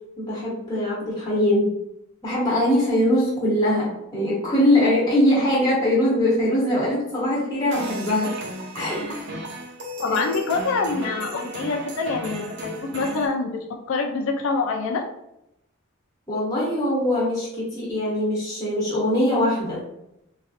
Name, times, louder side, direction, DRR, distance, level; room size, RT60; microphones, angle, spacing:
voice 1, 0.2-1.7 2.2-8.3 8.7-9.3 10.1-10.2 16.3-19.8, left 1 dB, 15° left, -7 dB, 0.9 m, -22 dB
sound 1, 7.7-13.3, right 1 dB, 50° right, 0.5 m, -34 dB
voice 2, 10.0-13.6 13.9-15.0, left 4 dB, 60° left, 2 dB, 0.3 m, -25 dB
3.1 x 2.5 x 2.5 m, 0.82 s
head